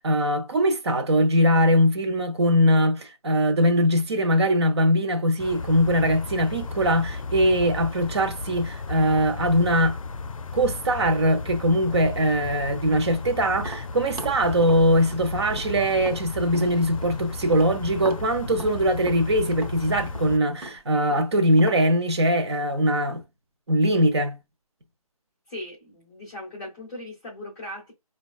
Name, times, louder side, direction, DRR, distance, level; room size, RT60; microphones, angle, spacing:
voice 1, 0.0-10.0 10.5-23.2 23.7-24.4, equal, 45° right, 0.7 m, -21 dB
sound 1, 5.4-20.4, left 3 dB, 60° left, 0.5 m, -35 dB
Tap, 13.5-17.2 17.5-21.9, right 2 dB, 85° right, 1.2 m, -39 dB
voice 2, 25.5-27.9, left 1 dB, 5° left, 0.6 m, -38 dB
4.3 x 2.3 x 2.3 m
figure-of-eight pair, 165°, 19 cm